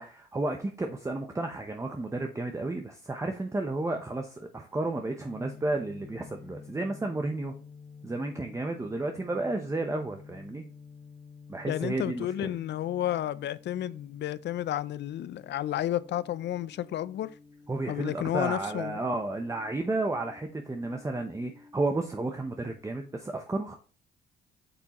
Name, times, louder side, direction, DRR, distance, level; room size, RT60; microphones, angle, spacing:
voice 1, 0.0-7.5 8.0-10.6 11.5-12.5 17.7-23.8, right 2 dB, 15° right, 0.8 m, -32 dB
sound 1, 5.2-22.8, left 5 dB, 5° left, 1.2 m, -51 dB
voice 2, 11.7-17.3 17.9-19.0, left 12 dB, 60° left, 0.5 m, -31 dB
8.1 x 6.0 x 3.0 m
cardioid pair, 90°, 20 cm